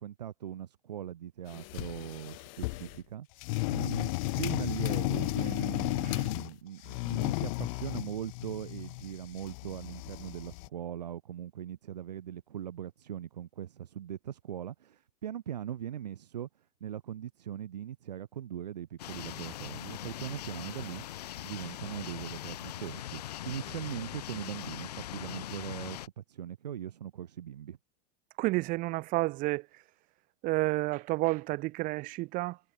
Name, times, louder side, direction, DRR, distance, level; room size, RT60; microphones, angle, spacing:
voice 1, 0.0-3.3 3.7-16.5 16.8-21.0 21.4-27.8, right 10 dB, 85° right, 0.9 m, -40 dB
sound 1, 1.5-3.0 3.4-6.5 6.8-10.7, left 27 dB, 55° left, 0.5 m, -34 dB
sound 2, 19.0-26.1, left 13 dB, 75° left, 2.4 m, -41 dB
voice 2, 28.4-29.7 30.4-32.6, right 21 dB, 40° right, 0.6 m, -30 dB
hypercardioid pair, 100°, 21 cm